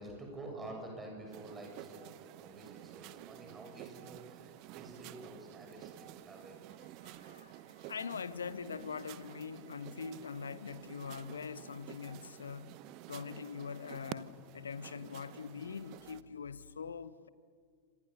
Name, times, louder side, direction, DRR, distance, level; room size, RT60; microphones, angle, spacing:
voice 1, 0.0-2.1 2.4-6.9, right 2 dB, 15° right, 7.0 m, -49 dB
sound 1, 1.3-16.2, right 14 dB, 40° right, 0.9 m, -51 dB
voice 2, 7.0-12.8 13.1-17.3, left 6 dB, 70° left, 0.9 m, -43 dB
28.0 x 26.0 x 6.7 m
figure-of-eight pair, 90°, 0 cm